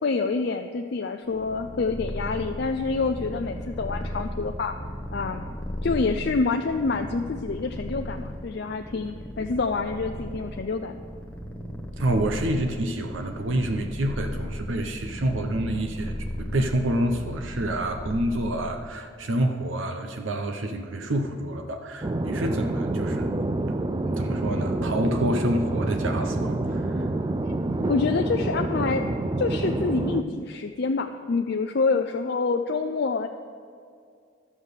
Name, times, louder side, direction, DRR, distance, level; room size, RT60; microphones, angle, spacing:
voice 1, 0.0-4.7 5.1-5.5 5.8-11.0 27.9-29.0 29.4-33.3, left 4 dB, 55° left, 5 dB, 0.4 m, -27 dB
Purr, 1.3-19.0, equal, 5° left, 0.9 m, -36 dB
voice 2, 12.0-23.3 24.1-27.1, right 1 dB, 70° right, 5 dB, 0.8 m, -28 dB
sound 1, 22.0-30.2, right 2 dB, 20° right, 0.3 m, -27 dB
12.0 x 7.3 x 6.5 m, 2.3 s
head